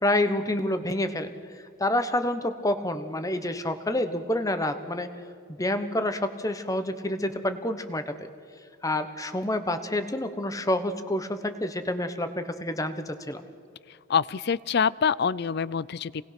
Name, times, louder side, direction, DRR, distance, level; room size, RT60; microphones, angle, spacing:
voice 1, 0.0-1.3 1.8-5.1 5.5-8.3 8.8-13.4, left 1 dB, 15° left, 9 dB, 1.1 m, -28 dB
voice 2, 14.1-16.3, left 6 dB, 55° left, 20 dB, 0.5 m, -25 dB
28.5 x 19.5 x 5.9 m, 2.4 s
head